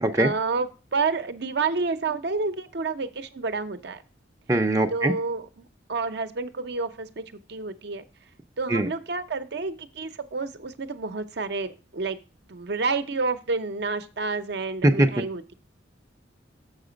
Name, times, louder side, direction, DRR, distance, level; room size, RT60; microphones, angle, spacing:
voice 1, 0.1-4.0 4.9-8.0 8.6-12.2 12.5-15.5, right 4 dB, 60° right, 9 dB, 0.7 m, -29 dB
voice 2, 4.5-5.1 8.7-8.9 14.8-15.1, right 1 dB, 15° right, 4 dB, 0.5 m, -21 dB
7.1 x 5.9 x 5.0 m, 0.34 s
head